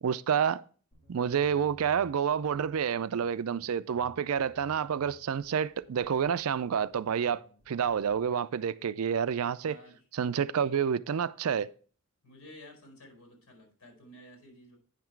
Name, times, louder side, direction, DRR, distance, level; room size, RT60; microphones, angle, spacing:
voice 1, 0.0-0.6 1.1-9.8 10.1-11.7, right 7 dB, 75° right, 0.4 m, -29 dB
sound 1, 0.9-8.3, equal, 30° left, 4.0 m, -59 dB
voice 2, 9.6-10.0 12.2-14.8, equal, 70° left, 4.8 m, -52 dB
9.4 x 5.9 x 4.5 m
head